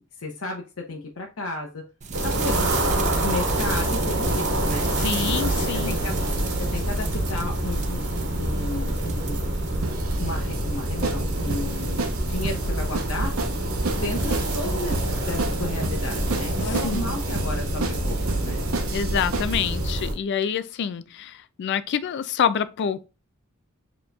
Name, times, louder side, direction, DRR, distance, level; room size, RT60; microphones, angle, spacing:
voice 1, 0.2-1.8 2.2-4.9 5.2-6.2 6.6-9.4 10.2-13.4 14.0-18.6, left 2 dB, 85° left, 0.8 m, -33 dB
sound 1, 2.0-19.0, right 4 dB, 35° right, 0.5 m, -38 dB
sound 2, 2.1-20.1, right 1 dB, 55° right, 1.2 m, -26 dB
voice 2, 5.0-6.0 16.8-17.2 18.9-23.1, left 8 dB, 55° left, 0.3 m, -27 dB
sound 3, 9.8-19.7, right 3 dB, 75° right, 0.7 m, -32 dB
5.1 x 3.0 x 2.3 m
head